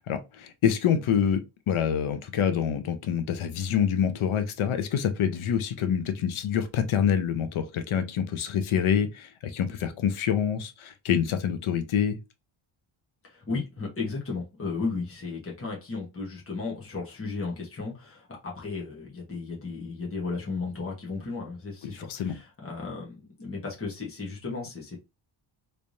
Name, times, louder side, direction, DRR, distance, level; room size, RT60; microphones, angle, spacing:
voice 1, 0.1-12.2 22.1-22.4, left 8 dB, 75° left, 0.7 m, -26 dB
voice 2, 13.2-25.0, left 4 dB, 25° left, 1.2 m, -34 dB
3.3 x 3.3 x 2.6 m
wide cardioid pair, 160°, 49 cm